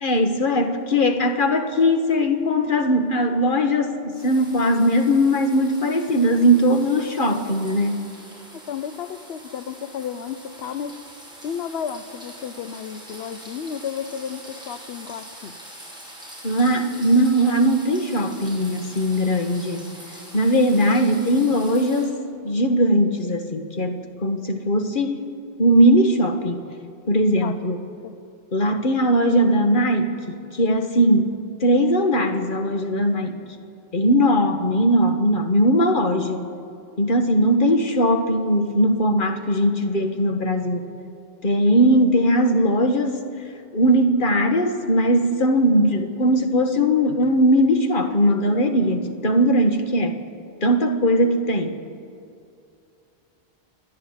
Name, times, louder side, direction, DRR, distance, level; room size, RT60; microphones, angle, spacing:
voice 1, 0.0-8.0 16.4-19.9 20.3-22.2 22.4-25.2 25.6-26.7 27.1-27.8 28.5-31.3 31.6-33.4 33.9-36.5 37.0-40.9 41.4-43.2 43.7-50.2 50.6-51.8, equal, 50° left, 5 dB, 1.6 m, -19 dB
sound 1, 4.1-22.1, right 1 dB, 5° right, 5.0 m, -43 dB
voice 2, 8.5-11.0 11.4-15.6 27.4-27.7 28.0-28.1, left 7 dB, 65° left, 10 dB, 1.0 m, -33 dB
28.0 x 10.5 x 8.9 m, 2.5 s
omnidirectional pair, 1.2 m